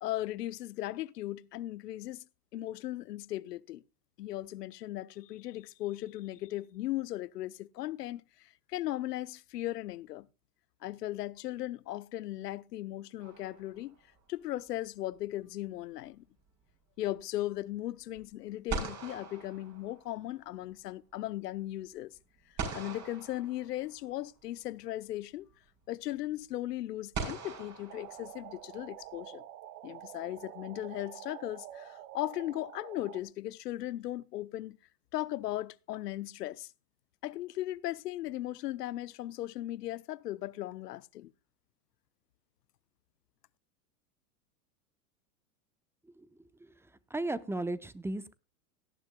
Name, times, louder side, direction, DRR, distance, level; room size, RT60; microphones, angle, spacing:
voice 1, 0.0-2.2 2.5-3.8 4.2-10.3 10.8-14.0 14.3-16.2 17.0-22.1 22.7-25.5 25.9-29.4 29.8-34.8 35.1-36.7 37.2-41.3, left 15 dB, 85° left, 0.8 m, -37 dB
sound 1, 13.2-14.1 18.2-18.3 18.7-20.4 22.6-24.2 25.5-25.6 27.1-28.8, right 4 dB, 35° right, 5.6 m, -41 dB
sound 2, 27.9-33.2, right 12 dB, 65° right, 1.7 m, -48 dB
voice 2, 47.1-48.3, right 2 dB, 5° right, 0.6 m, -34 dB
18.0 x 12.5 x 2.2 m
hypercardioid pair, 105°, 47 cm